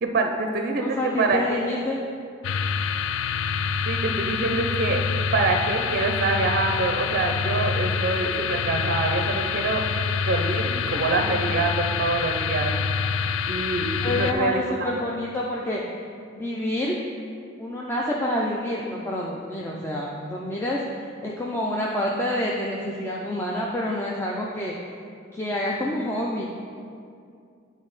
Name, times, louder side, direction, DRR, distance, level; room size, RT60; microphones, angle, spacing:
voice 1, 0.0-1.7 3.9-5.0 5.3-9.9 10.3-12.7 13.5-14.6, right 3 dB, 50° right, 4 dB, 0.5 m, -25 dB
voice 2, 0.8-2.0 10.9-11.0 14.0-15.8 16.3-17.0 17.6-24.8 25.3-26.5, left 1 dB, 10° left, -3 dB, 0.4 m, -28 dB
sound 1, 2.4-14.3, left 6 dB, 75° left, 0.3 m, -26 dB
9.8 x 3.6 x 4.0 m, 2.3 s
head